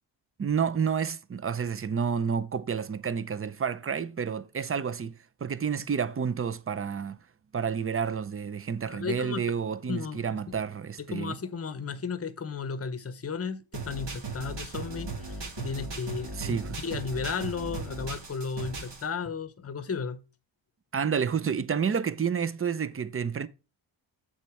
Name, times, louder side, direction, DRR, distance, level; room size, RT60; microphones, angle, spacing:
voice 1, 0.4-5.1 5.4-7.2 7.5-11.3 16.4-16.8 20.9-23.5, right 6 dB, 30° right, 0.6 m, -30 dB
voice 2, 8.9-9.4 9.9-10.4 11.0-16.6 16.8-20.2, left 5 dB, 30° left, 0.9 m, -34 dB
sound 1, 13.7-19.0, right 3 dB, 60° right, 2.3 m, -37 dB
7.4 x 4.4 x 4.7 m
cardioid pair, 55°, 47 cm